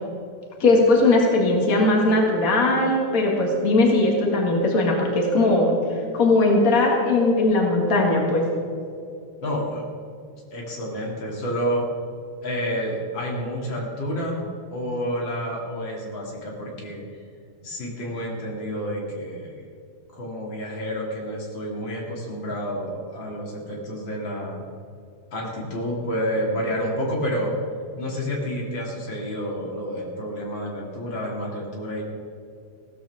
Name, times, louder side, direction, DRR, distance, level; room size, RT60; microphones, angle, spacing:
voice 1, 0.6-5.8 6.1-8.4, left 2 dB, 80° left, -1 dB, 0.7 m, -19 dB
voice 2, 9.4-9.8 10.5-11.9 12.4-17.0 17.6-19.6 20.1-24.6 25.3-27.5 27.9-32.0, equal, 35° left, -2 dB, 2.5 m, -29 dB
16.5 x 14.5 x 3.5 m, 2.5 s
omnidirectional pair, 4.9 m